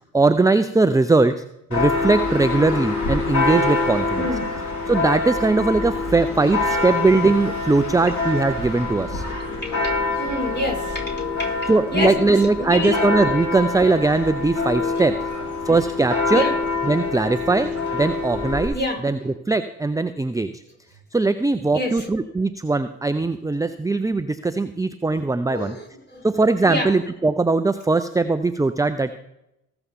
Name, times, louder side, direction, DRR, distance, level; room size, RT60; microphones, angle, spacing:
voice 1, 0.1-1.4 1.7-4.3 4.9-9.2 11.7-15.1 15.6-16.4 16.8-18.7 19.0-20.5 21.1-25.8 26.2-29.1, right 3 dB, 10° right, 11 dB, 0.6 m, -20 dB
Church bell, 1.7-18.7, left 3 dB, 45° left, 4.8 m, -25 dB
voice 2, 4.2-4.5 6.4-7.2 8.0-8.1 9.3-13.1 14.8-15.1 15.6-15.7 16.3-16.6 18.7-19.0 21.7-22.1 25.5-26.3 26.6-26.9, left 2 dB, 25° left, -1 dB, 4.9 m, -29 dB
19.5 x 7.0 x 3.7 m, 0.86 s
hypercardioid pair, 40°, 40 cm